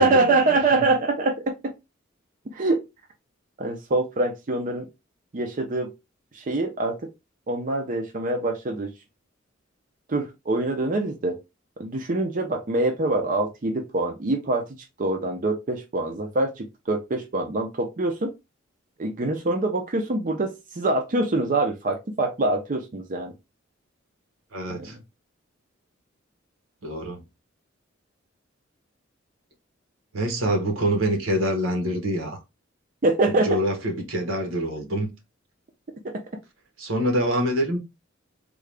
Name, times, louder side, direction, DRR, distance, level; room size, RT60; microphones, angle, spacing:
voice 1, 0.0-1.5 2.5-2.9 3.6-4.9 5.3-5.9 6.3-7.1 7.5-8.9 10.1-11.4 11.8-14.6 15.0-18.3 19.0-23.3 24.7-24.9 33.0-33.6 36.0-36.1, right 2 dB, 40° right, 0.5 m, -24 dB
voice 2, 24.5-25.0 26.8-27.2 30.1-32.4 33.4-35.1 36.8-37.8, equal, 80° right, 1.1 m, -25 dB
3.7 x 2.3 x 3.3 m
head